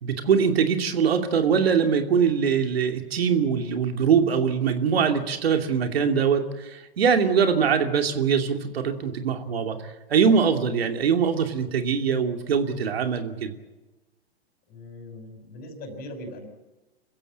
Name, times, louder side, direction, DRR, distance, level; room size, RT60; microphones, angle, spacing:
voice 1, 0.0-13.5, right 6 dB, 70° right, 6 dB, 2.8 m, -23 dB
voice 2, 14.7-16.5, left 1 dB, 30° left, 6 dB, 5.8 m, -40 dB
26.0 x 15.5 x 8.8 m, 1.1 s
hypercardioid pair, 115°, 31 cm